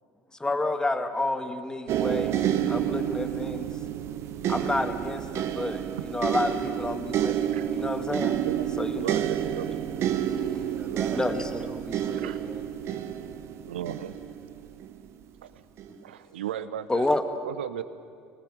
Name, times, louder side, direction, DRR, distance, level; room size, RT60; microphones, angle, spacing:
voice 1, 0.4-2.4 2.7-3.7 4.5-8.3 8.8-9.1 11.1-11.5 16.0-16.1 16.9-17.3, left 2 dB, 10° left, 8 dB, 1.9 m, -29 dB
sound 1, 1.9-15.0 15.8-15.9, right 10 dB, 50° right, 1.3 m, -29 dB
voice 2, 9.0-9.7 12.2-12.4 13.6-14.1 15.4-15.6 16.0-17.1 17.4-17.8, right 10 dB, 80° right, 13 dB, 0.8 m, -35 dB
voice 3, 10.7-12.6, right 3 dB, 20° right, 6 dB, 2.1 m, -39 dB
25.5 x 19.5 x 7.8 m, 2.3 s
hypercardioid pair, 70°, 6 cm